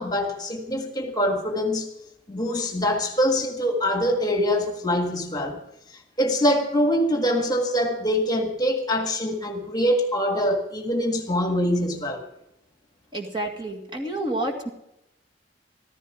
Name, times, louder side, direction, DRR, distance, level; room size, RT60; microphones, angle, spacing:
voice 1, 0.0-1.9 2.3-5.6 5.9-12.2, equal, 20° left, 1.6 m, -24 dB
voice 2, 13.1-14.7, right 1 dB, 25° right, 2.1 m, -29 dB
14.5 x 14.0 x 4.8 m
head